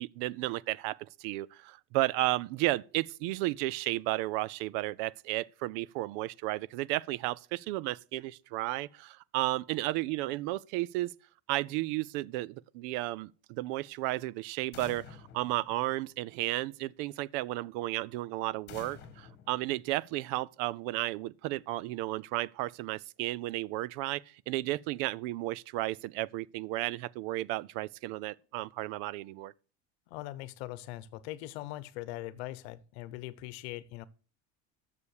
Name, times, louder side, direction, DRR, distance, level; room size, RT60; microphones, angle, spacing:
voice 1, 0.0-11.1 11.5-29.5, right 18 dB, 60° right, 0.5 m, -33 dB
sound 1, 14.7-16.5 18.7-20.4, left 7 dB, 35° left, 1.6 m, -50 dB
voice 2, 30.1-34.1, left 16 dB, 80° left, 0.9 m, -41 dB
9.8 x 7.0 x 6.4 m
cardioid pair, 175°, 31 cm